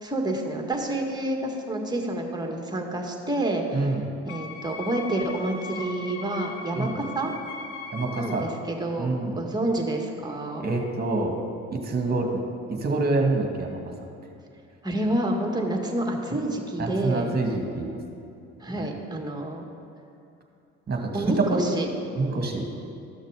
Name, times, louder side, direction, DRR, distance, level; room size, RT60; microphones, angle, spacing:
voice 1, 0.0-3.9 4.3-7.3 8.2-10.7 14.8-17.3 18.6-19.7 21.1-21.9, right 1 dB, 10° right, 1 dB, 1.8 m, -28 dB
voice 2, 3.7-4.0 6.7-6.9 7.9-8.5 9.0-9.4 10.6-11.3 11.7-12.4 12.7-13.8 16.8-17.9 20.9-21.6 22.2-22.7, right 3 dB, 30° right, 2 dB, 2.0 m, -26 dB
Wind instrument woodwind instrument, 4.3-8.6, left 4 dB, 85° left, 1.0 m, -39 dB
13.0 x 6.4 x 5.0 m, 2.7 s
hypercardioid pair, 60°, 32 cm